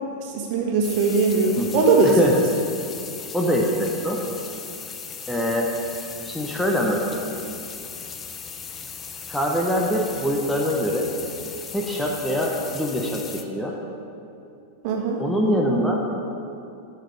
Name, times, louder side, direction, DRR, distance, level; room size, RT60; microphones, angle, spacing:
voice 1, 0.2-2.2 14.8-15.2, right 4 dB, 45° right, 0 dB, 1.6 m, -20 dB
sound 1, 0.8-13.4, left 6 dB, 20° left, 0.6 m, -37 dB
voice 2, 1.6-2.4 3.3-4.2 5.3-5.7 6.2-7.2 9.3-11.1 11.7-13.7 15.2-16.0, equal, 5° left, -1 dB, 1.0 m, -24 dB
12.0 x 5.8 x 4.8 m, 2.6 s
figure-of-eight pair, 90°, 0 cm